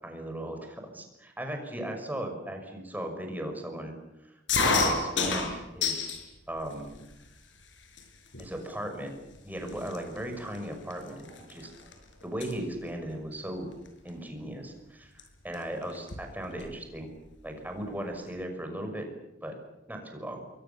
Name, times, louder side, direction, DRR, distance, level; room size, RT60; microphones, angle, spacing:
voice 1, 0.0-3.9 4.6-6.1 6.5-6.9 8.4-9.1 9.4-11.7 12.2-13.7 14.0-17.1 17.4-19.1 19.4-19.5 19.9-20.4, right 1 dB, 10° right, 4 dB, 6.0 m, -37 dB
sound 1, 4.5-6.2 6.7-7.3 8.0-8.1 8.3-8.7 9.4-9.5 9.7-11.9 12.2-12.5 13.9-14.1 15.2-15.3 15.5-15.6 15.9-16.8, left 4 dB, 90° left, 5.5 m, -29 dB
29.0 x 23.5 x 7.1 m, 0.94 s
head